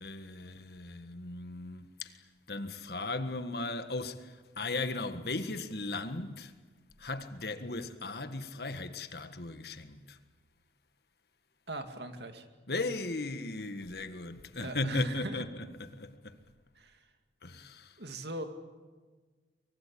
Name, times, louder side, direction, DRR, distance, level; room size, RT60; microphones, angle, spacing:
voice 1, 0.0-2.2 2.5-6.5 7.0-10.2 12.7-16.4 17.4-18.0, left 2 dB, 60° left, 1.6 m, -37 dB
voice 2, 11.7-12.5 14.6-15.4 16.8-17.0 18.0-18.4, right 2 dB, 70° right, 2.4 m, -39 dB
24.0 x 23.0 x 8.6 m
head